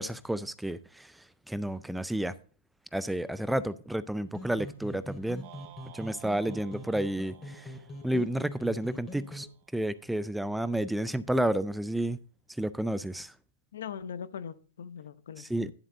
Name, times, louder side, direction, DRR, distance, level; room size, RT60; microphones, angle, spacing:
voice 1, 0.0-2.3 2.9-5.5 5.9-7.7 8.0-9.5 9.7-12.2 12.6-13.3 15.4-15.7, right 1 dB, ahead, 0.3 m, -31 dB
sound 1, 4.3-9.5, left 1 dB, 20° left, 2.5 m, -44 dB
sound 2, 5.4-9.7, right 12 dB, 45° right, 0.6 m, -54 dB
voice 2, 13.7-15.7, left 7 dB, 70° left, 0.8 m, -41 dB
10.0 x 7.3 x 3.9 m
hypercardioid pair, 135°, 0 cm